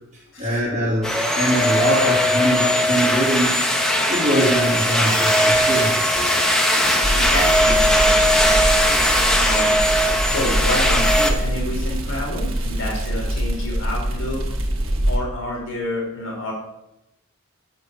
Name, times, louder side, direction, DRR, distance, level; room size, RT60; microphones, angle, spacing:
voice 1, 0.4-3.5 4.1-6.3, equal, 35° right, -4 dB, 3.3 m, -23 dB
sound 1, 1.0-11.3, equal, ahead, 1.0 m, -19 dB
sound 2, 3.8-9.7, right 3 dB, 20° right, 1.7 m, -34 dB
sound 3, 7.0-15.2, right 1 dB, 75° right, 1.7 m, -24 dB
voice 2, 7.1-9.7 10.2-14.4 15.0-16.5, left 1 dB, 70° left, -2 dB, 3.2 m, -29 dB
7.0 x 6.9 x 7.2 m, 0.89 s
head